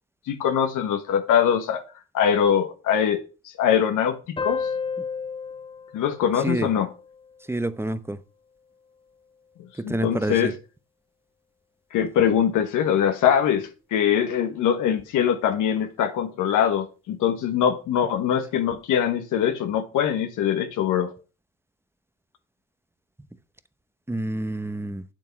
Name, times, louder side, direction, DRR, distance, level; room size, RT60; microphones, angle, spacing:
voice 1, 0.3-1.8 2.1-3.2 3.6-4.7 5.9-6.9 9.8-10.5 11.9-21.1, left 9 dB, 85° left, 1.4 m, -22 dB
sound 1, 4.4-7.5, left 5 dB, 20° left, 0.5 m, -32 dB
voice 2, 6.4-6.7 7.5-8.2 9.8-10.5 24.1-25.0, right 2 dB, 10° right, 0.9 m, -28 dB
8.4 x 7.5 x 6.0 m
cardioid pair, 90°, 30 cm